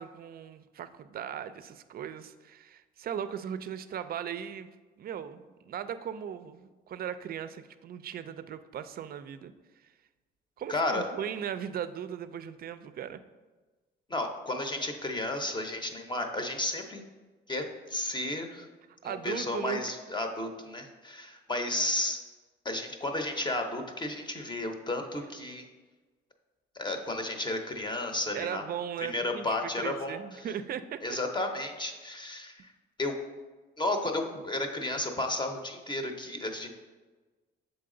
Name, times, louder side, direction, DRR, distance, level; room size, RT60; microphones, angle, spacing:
voice 1, 0.0-9.5 10.6-13.2 19.0-19.8 28.3-31.2, right 9 dB, 50° right, 12 dB, 0.4 m, -38 dB
voice 2, 10.7-11.1 14.1-17.0 17.5-18.7 19.0-22.2 22.6-25.7 26.8-28.6 29.0-30.2 31.0-32.7 33.0-33.1 33.8-36.7, left 2 dB, 20° left, 5 dB, 0.8 m, -33 dB
6.7 x 4.1 x 3.8 m, 1.3 s
cardioid pair, 90°, 20 cm